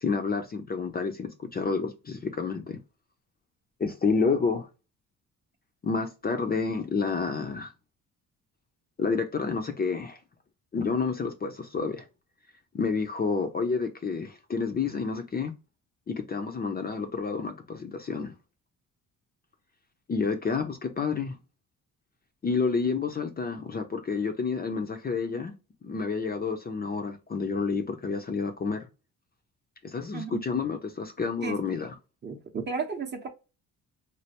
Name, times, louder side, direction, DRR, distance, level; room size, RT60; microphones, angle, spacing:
voice 1, 0.0-2.8 3.8-4.7 5.8-7.7 9.0-10.2 10.7-12.0 12.7-15.5 16.1-18.3 20.1-21.4 22.4-25.5 25.8-28.8 29.8-31.9, left 5 dB, 30° left, 0.4 m, -29 dB
voice 2, 31.4-31.8 32.2-33.3, right 5 dB, 30° right, 0.6 m, -34 dB
3.2 x 2.4 x 2.8 m
cardioid pair, 120°, 34 cm